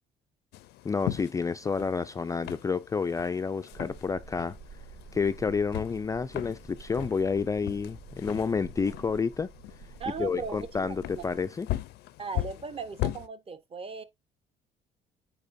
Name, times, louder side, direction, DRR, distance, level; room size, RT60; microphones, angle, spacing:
sound 1, 0.5-13.3, left 15 dB, 80° left, 0.5 m, -39 dB
voice 1, 0.8-4.6 5.1-9.5 10.2-11.7, left 5 dB, 20° left, 0.3 m, -29 dB
sound 2, 3.7-11.4, right 5 dB, 80° right, 4.3 m, -49 dB
voice 2, 10.0-11.2 12.2-14.0, right 5 dB, 35° right, 1.0 m, -38 dB
8.6 x 4.6 x 2.6 m
cardioid pair, 110°, 17 cm